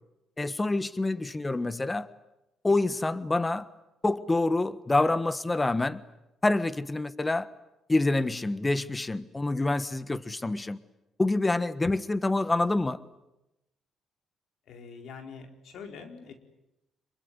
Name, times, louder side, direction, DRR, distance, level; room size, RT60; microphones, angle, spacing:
voice 1, 0.4-2.1 2.6-3.7 4.0-6.0 6.4-7.5 7.9-10.8 11.2-13.0, left 2 dB, 20° left, 14 dB, 1.4 m, -27 dB
voice 2, 14.7-16.3, left 5 dB, 75° left, 5 dB, 4.6 m, -44 dB
26.5 x 23.0 x 9.7 m, 0.92 s
cardioid pair, 90°, 0 cm